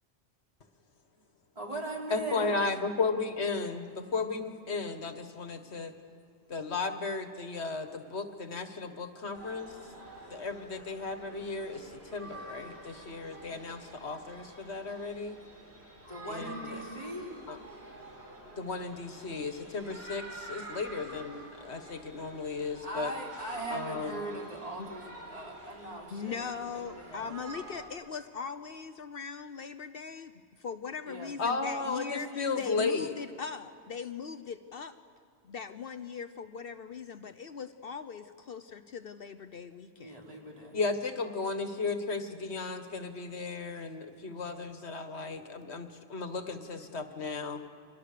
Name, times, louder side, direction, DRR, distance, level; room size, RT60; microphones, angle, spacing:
voice 1, 1.6-2.6 16.0-17.3 22.8-27.3 31.1-31.3 40.0-40.8, right 1 dB, 35° right, -2 dB, 4.1 m, -40 dB
voice 2, 2.1-5.9 6.5-9.7 10.3-15.4 16.3-16.8 17.5-17.6 18.6-23.1 23.7-24.2 31.4-33.1 40.7-47.6, left 4 dB, 80° left, 7 dB, 1.8 m, -35 dB
sound 1, 9.3-27.9, right 2 dB, 70° right, 4.2 m, -48 dB
voice 3, 26.1-30.3 30.6-34.9 35.4-40.3, left 6 dB, 60° left, 9 dB, 1.0 m, -40 dB
30.0 x 24.0 x 6.8 m, 2.5 s
omnidirectional pair, 1.1 m